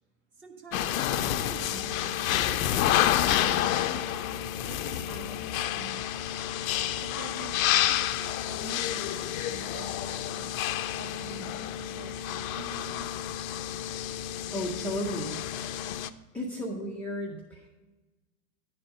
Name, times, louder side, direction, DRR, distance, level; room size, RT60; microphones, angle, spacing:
voice 1, 0.4-6.4 7.0-7.5 7.9-13.0, right 4 dB, 25° right, 3 dB, 1.4 m, -47 dB
sound 1, 0.7-16.1, left 12 dB, 65° left, 0.6 m, -29 dB
voice 2, 14.5-15.4 16.3-17.7, equal, 5° left, -3 dB, 0.6 m, -34 dB
10.5 x 4.3 x 6.3 m, 1.2 s
hypercardioid pair, 130°, 45 cm